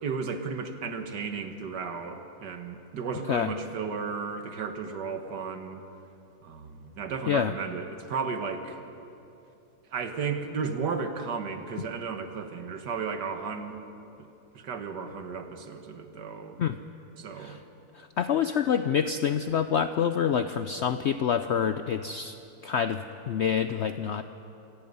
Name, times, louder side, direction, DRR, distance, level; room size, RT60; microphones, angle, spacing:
voice 1, 0.0-5.8 6.4-8.8 9.9-13.8 14.2-14.3 14.5-16.6 17.2-17.6, right 5 dB, 85° right, 7 dB, 1.9 m, -34 dB
voice 2, 17.9-22.4 22.6-24.2, left 8 dB, 75° left, 10 dB, 0.6 m, -27 dB
27.5 x 17.5 x 5.5 m, 2.8 s
omnidirectional pair, 1.8 m